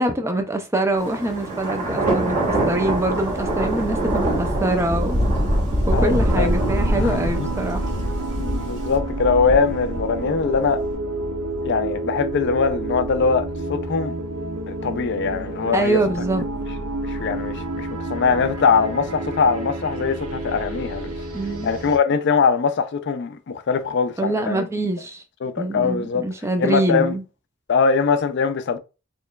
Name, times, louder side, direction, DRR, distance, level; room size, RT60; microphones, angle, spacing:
voice 1, 0.0-5.2 5.9-7.9 15.7-16.4 21.3-21.7 24.2-25.2 25.6-27.2, right 1 dB, 10° right, 0.4 m, -24 dB
Thunder, 1.0-10.8, right 1 dB, 35° right, 1.6 m, -23 dB
voice 2, 5.9-6.5 6.9-7.5 8.4-10.8 11.6-14.1 14.7-16.0 17.0-21.1 21.6-24.6 25.4-26.2 26.6-27.2 27.7-28.8, left 5 dB, 50° left, 0.4 m, -22 dB
sound 1, 6.2-22.0, right 2 dB, 80° right, 0.6 m, -30 dB
4.3 x 3.0 x 2.3 m
head